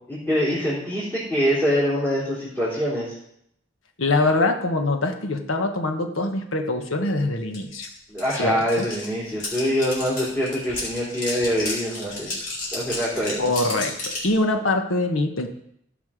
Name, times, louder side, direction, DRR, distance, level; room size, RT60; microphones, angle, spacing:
voice 1, 0.1-3.1 8.1-12.3 12.7-13.4, equal, 10° left, -9 dB, 3.4 m, -24 dB
voice 2, 4.0-7.9 8.3-8.9 13.4-15.5, left 2 dB, 80° left, 5 dB, 1.3 m, -24 dB
sound 1, 7.5-7.6 7.8-14.3, left 2 dB, 45° left, 3.9 m, -32 dB
15.5 x 5.7 x 5.0 m, 0.73 s
head